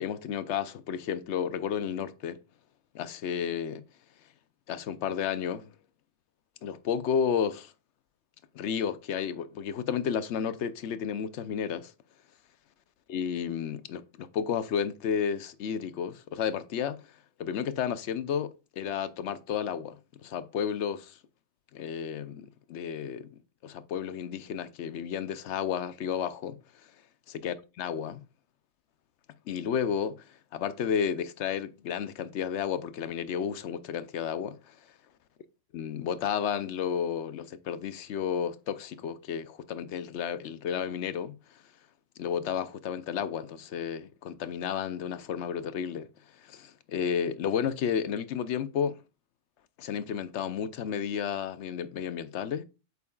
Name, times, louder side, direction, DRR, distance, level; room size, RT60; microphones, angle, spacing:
voice 1, 0.0-2.4 2.9-3.8 4.7-5.7 6.6-7.7 8.5-11.9 13.1-17.1 17.4-21.2 21.7-23.3 23.6-26.9 27.3-28.2 29.5-34.8 35.7-41.6 42.2-46.1 46.3-49.0 49.8-52.6, left 7 dB, 70° left, 0.9 m, -32 dB
8.3 x 6.9 x 2.3 m
omnidirectional pair, 1.3 m